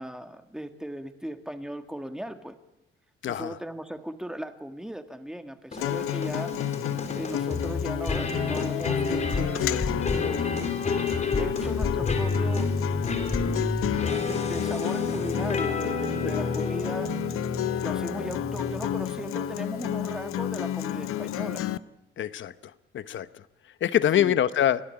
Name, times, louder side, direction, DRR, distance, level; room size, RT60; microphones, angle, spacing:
voice 1, 0.0-2.6 3.3-6.5 7.1-10.1 11.4-12.7 14.3-17.1 17.8-21.6 24.1-24.4, equal, 5° right, 7 dB, 1.6 m, -37 dB
sound 1, 5.7-19.2, left 3 dB, 35° left, 3.9 m, -30 dB
Acoustic guitar, 5.8-21.8, left 12 dB, 90° left, 0.7 m, -31 dB
voice 2, 22.2-22.5 22.9-23.3 23.8-24.8, left 10 dB, 65° left, 13 dB, 1.0 m, -24 dB
30.0 x 11.5 x 8.9 m, 0.91 s
cardioid pair, 110°, 21 cm